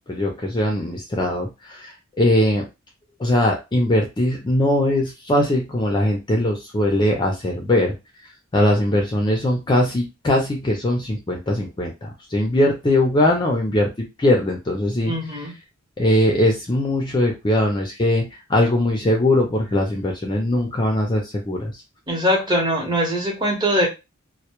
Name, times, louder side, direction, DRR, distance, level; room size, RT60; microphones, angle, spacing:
voice 1, 0.1-2.7 3.2-7.9 8.5-15.1 16.0-21.7, left 1 dB, 20° left, 1 dB, 0.4 m, -20 dB
voice 2, 15.1-15.5 22.1-23.9, equal, 20° right, 0 dB, 0.8 m, -21 dB
2.1 x 2.0 x 2.9 m, 0.25 s
head